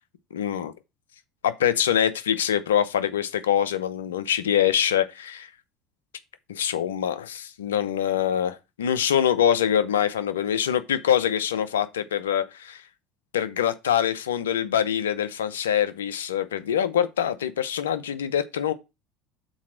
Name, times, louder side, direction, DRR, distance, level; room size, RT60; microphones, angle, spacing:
voice 1, 0.3-0.7 1.4-5.5 6.5-12.8 13.3-18.7, left 9 dB, 90° left, 0.6 m, -24 dB
6.3 x 4.2 x 6.2 m
hypercardioid pair, 75°, 0 cm